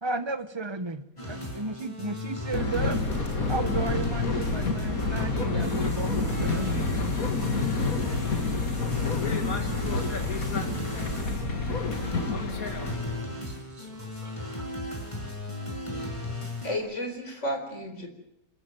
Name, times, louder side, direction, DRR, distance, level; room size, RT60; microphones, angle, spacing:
voice 1, 0.0-3.0 3.5-7.1, right 3 dB, 20° right, 11 dB, 1.2 m, -34 dB
sound 1, 1.2-16.8, left 1 dB, 20° left, 6.0 m, -36 dB
sound 2, 2.5-13.0, left 3 dB, 70° left, 2.8 m, -28 dB
sound 3, 5.6-11.4, right 1 dB, 35° right, 5.0 m, -48 dB
voice 2, 9.6-10.5 11.6-11.7 13.2-14.7, right 2 dB, 85° right, 4 dB, 5.0 m, -53 dB
voice 3, 12.5-13.5 16.6-18.1, left 1 dB, 50° left, 5 dB, 4.7 m, -34 dB
27.0 x 15.0 x 9.2 m, 0.80 s
omnidirectional pair, 1.6 m